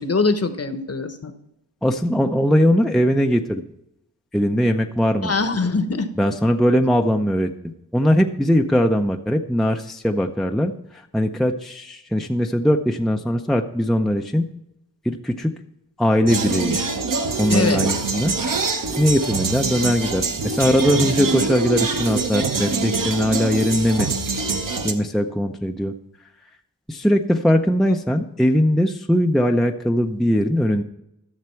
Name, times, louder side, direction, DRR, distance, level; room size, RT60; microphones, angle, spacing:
voice 1, 0.0-1.3 5.2-6.1 17.5-17.8, left 3 dB, 35° left, 9 dB, 1.0 m, -22 dB
voice 2, 1.8-3.6 4.3-5.3 6.2-7.5 7.9-14.5 15.0-15.5 16.0-16.9 17.4-24.1 24.8-25.9 26.9-30.8, equal, ahead, 4 dB, 0.6 m, -20 dB
sound 1, 16.3-24.9, right 4 dB, 50° right, 1.1 m, -24 dB
13.0 x 6.6 x 4.5 m, 0.83 s
cardioid pair, 65°, 42 cm